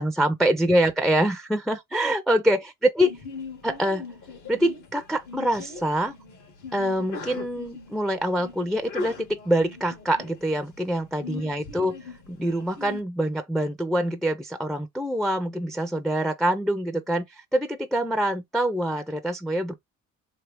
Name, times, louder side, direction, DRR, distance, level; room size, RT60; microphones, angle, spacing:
voice 1, 0.0-3.1 3.6-4.0 4.5-6.1 6.7-11.9 12.3-19.7, right 1 dB, ahead, 0.4 m, -25 dB
Sneeze, 3.0-13.0, left 4 dB, 80° left, 1.6 m, -40 dB
3.4 x 2.6 x 3.3 m
cardioid pair, 90°, 30 cm